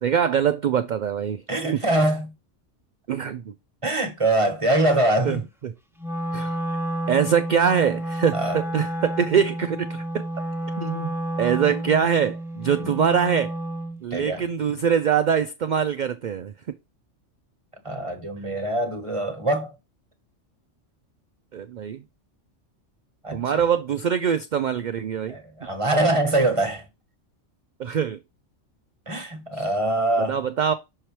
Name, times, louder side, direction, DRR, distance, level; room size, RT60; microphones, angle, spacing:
voice 1, 0.0-1.4 3.1-3.5 5.2-5.7 6.3-6.6 7.1-10.3 10.8-13.5 14.0-16.5 21.5-22.0 23.3-25.4 27.8-28.2 29.5-29.7 30.2-30.7, right 7 dB, 65° right, 0.4 m, -23 dB
voice 2, 1.5-2.3 3.8-5.4 8.3-8.6 12.8-12.9 14.1-14.4 17.8-19.7 23.2-23.4 25.3-26.8 29.1-30.4, right 1 dB, 25° right, 1.3 m, -23 dB
Wind instrument woodwind instrument, 6.0-14.0, right 1 dB, 5° right, 0.6 m, -30 dB
6.7 x 4.5 x 3.2 m
omnidirectional pair, 1.3 m